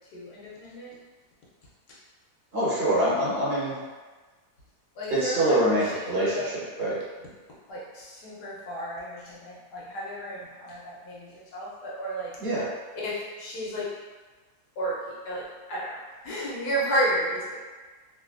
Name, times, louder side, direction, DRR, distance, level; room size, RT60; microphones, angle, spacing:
voice 1, 0.1-0.9 5.0-6.5 7.7-12.3 12.9-13.9 14.8-15.0 15.2-15.4 15.7-16.0 16.2-17.6, equal, 85° left, -6 dB, 1.4 m, -32 dB
voice 2, 2.5-3.8 5.1-7.0 12.4-12.7, right 1 dB, 40° right, -9 dB, 1.3 m, -25 dB
3.1 x 2.6 x 2.5 m, 1.3 s
omnidirectional pair, 1.7 m